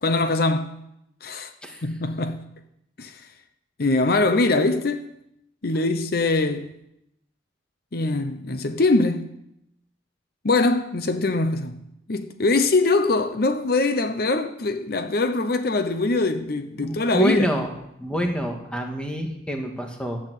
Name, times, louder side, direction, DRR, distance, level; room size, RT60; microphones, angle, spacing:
voice 1, 0.0-0.8 1.2-1.5 1.8-2.4 3.0-3.3 3.8-5.1 5.6-6.7 7.9-9.3 10.4-11.8 12.1-17.5, left 2 dB, 55° left, 0.8 m, -22 dB
voice 2, 16.8-17.7 18.0-20.2, equal, 5° left, 1.7 m, -26 dB
12.0 x 8.8 x 7.6 m
head